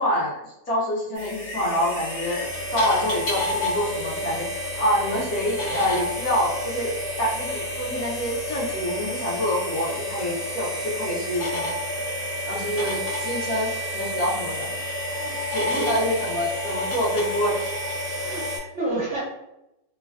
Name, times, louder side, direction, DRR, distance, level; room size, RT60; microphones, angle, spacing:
voice 1, 0.0-4.5 4.8-6.9 7.2-11.7 12.5-13.7 13.9-14.7 15.5-17.7, equal, 60° left, -6 dB, 1.2 m, -26 dB
sound 1, 1.1-18.6, left 1 dB, 35° left, 0.7 m, -29 dB
voice 2, 12.5-12.9 15.2-15.9 18.2-19.2, right 2 dB, 55° right, -8 dB, 0.8 m, -32 dB
3.1 x 2.1 x 2.4 m, 0.88 s
omnidirectional pair, 2.0 m